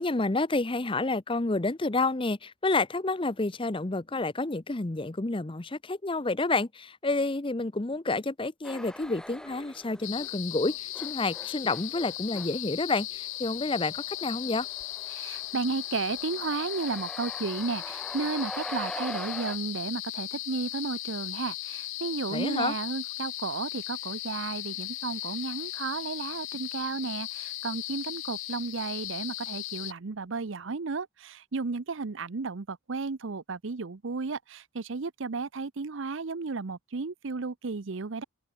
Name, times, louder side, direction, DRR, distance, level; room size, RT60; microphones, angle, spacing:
voice 1, 0.0-14.7 22.3-22.7, left 3 dB, 25° left, 0.7 m, -29 dB
sound 1, 8.6-10.3 10.6-19.6, left 1 dB, 5° left, 3.3 m, -43 dB
sound 2, 10.0-29.9, left 17 dB, 75° left, 0.8 m, -37 dB
voice 2, 15.1-38.2, right 4 dB, 70° right, 0.7 m, -33 dB
head